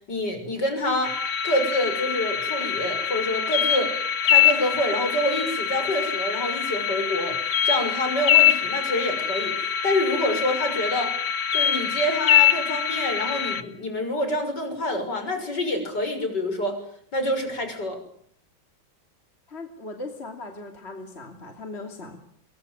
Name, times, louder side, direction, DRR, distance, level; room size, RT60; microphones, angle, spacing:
voice 1, 0.1-1.2 1.4-3.9 4.2-7.4 7.6-11.1 11.5-16.8 17.1-18.0, left 1 dB, 65° left, 6 dB, 7.1 m, -27 dB
sound 1, 1.0-13.6, left 9 dB, 85° left, 2.5 m, -24 dB
voice 2, 19.5-22.2, left 2 dB, 35° left, 5 dB, 3.1 m, -38 dB
23.0 x 23.0 x 9.5 m, 0.63 s
omnidirectional pair, 2.0 m